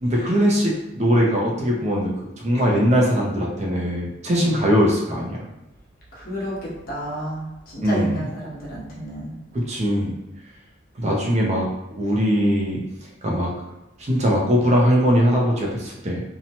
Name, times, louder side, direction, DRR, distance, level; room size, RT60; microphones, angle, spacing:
voice 1, 0.0-2.1 2.4-5.5 7.8-8.2 9.5-10.1 11.0-11.7 12.0-12.8 13.2-13.5 14.0-16.2, equal, 35° right, -2 dB, 0.5 m, -20 dB
voice 2, 6.1-9.4, equal, 55° left, -5 dB, 0.9 m, -31 dB
2.8 x 2.1 x 2.8 m, 0.98 s
head